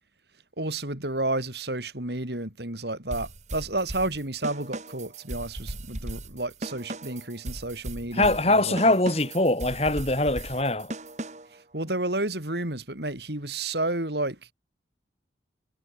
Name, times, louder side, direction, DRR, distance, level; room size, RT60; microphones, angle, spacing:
voice 1, 0.6-9.0 11.7-14.4, right 2 dB, 65° right, 4.8 m, -31 dB
sound 1, 3.1-11.6, right 1 dB, 40° right, 2.1 m, -38 dB
voice 2, 8.1-10.9, left 2 dB, 35° left, 3.0 m, -23 dB
head